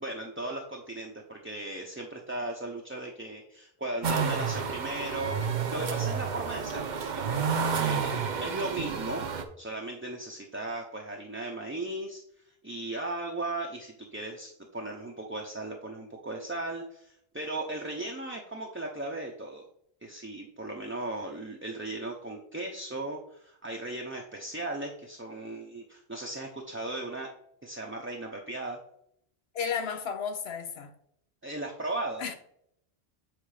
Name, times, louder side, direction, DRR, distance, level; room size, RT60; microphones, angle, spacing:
voice 1, 0.0-9.3 9.6-12.2 12.6-19.6 20.0-27.3 27.6-28.8 31.4-32.2, right 2 dB, 15° right, 0.6 m, -37 dB
sound 1, 4.0-9.4, right 6 dB, 50° right, 0.8 m, -30 dB
voice 2, 29.5-30.9 32.2-32.3, left 6 dB, 70° left, 1.1 m, -33 dB
7.8 x 3.7 x 4.9 m
omnidirectional pair, 1.1 m